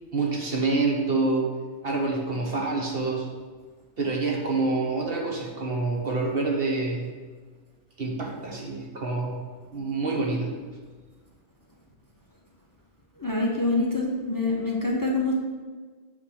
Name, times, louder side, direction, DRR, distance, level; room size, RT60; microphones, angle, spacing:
voice 1, 0.1-1.5 1.8-3.3 4.0-7.1 8.0-9.4 9.7-10.5, right 3 dB, 55° right, 0 dB, 1.6 m, -27 dB
voice 2, 13.2-15.3, left 2 dB, 20° left, -1 dB, 1.0 m, -25 dB
9.1 x 4.4 x 6.5 m, 1.4 s
omnidirectional pair, 1.2 m